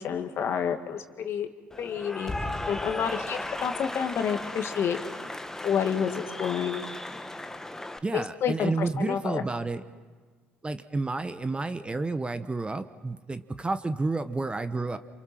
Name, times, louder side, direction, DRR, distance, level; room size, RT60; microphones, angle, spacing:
voice 1, 0.0-1.5 1.8-2.3 2.7-5.0 5.6-6.8 8.1-9.4, left 8 dB, 50° left, 6 dB, 2.1 m, -29 dB
Cheering / Applause, 1.7-8.0, left 1 dB, 10° left, 1.3 m, -36 dB
voice 2, 8.0-9.8 10.6-15.0, right 3 dB, 20° right, 11 dB, 1.2 m, -30 dB
28.5 x 28.0 x 6.0 m, 1.5 s
hypercardioid pair, 60°, 5 cm